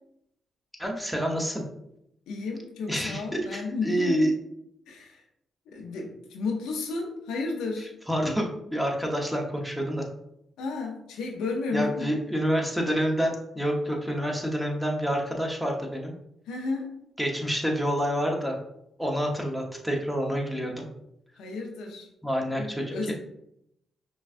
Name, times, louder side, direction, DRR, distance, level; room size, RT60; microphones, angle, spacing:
voice 1, 0.8-1.6 2.9-4.3 8.1-10.1 11.7-16.1 17.2-18.6 19.0-20.9 22.2-23.1, equal, ahead, 0 dB, 1.0 m, -28 dB
voice 2, 2.3-4.3 4.9-5.2 5.7-7.9 10.6-12.1 16.5-16.9 21.4-22.1 22.5-23.1, left 3 dB, 85° left, 1 dB, 0.6 m, -32 dB
5.3 x 2.3 x 2.5 m, 0.79 s
supercardioid pair, 50°, 0 cm